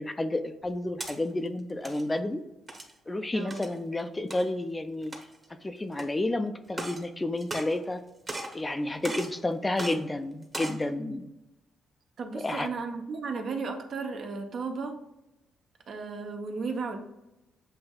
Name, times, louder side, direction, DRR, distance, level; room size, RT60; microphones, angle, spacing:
voice 1, 0.0-2.4 3.1-5.2 5.5-8.0 8.5-11.3 12.3-12.7, left 2 dB, 20° left, 8 dB, 0.4 m, -31 dB
sound 1, 0.6-1.2 1.7-2.0 2.7-3.0 3.5-3.7 4.3-4.4 5.0-5.5 6.0-6.1 6.7-7.0 7.4-8.0 8.3-8.6 9.0-9.4 9.8-10.0 10.4-10.8, right 2 dB, 25° right, 1.0 m, -37 dB
voice 2, 3.3-3.6 12.2-15.0 15.9-17.0, right 4 dB, 60° right, 5 dB, 0.7 m, -34 dB
7.5 x 2.6 x 2.3 m, 0.93 s
cardioid pair, 90°, 0 cm